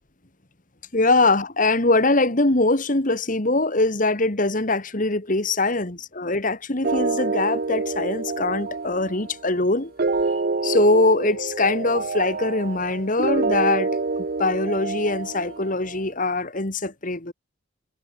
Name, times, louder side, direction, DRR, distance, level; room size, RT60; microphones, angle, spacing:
voice 1, 0.9-9.9 10.6-14.0 14.4-17.3, left 2 dB, 40° left, 1.8 m, -22 dB
sound 1, 6.8-16.0, right 3 dB, 45° right, 0.7 m, -27 dB
head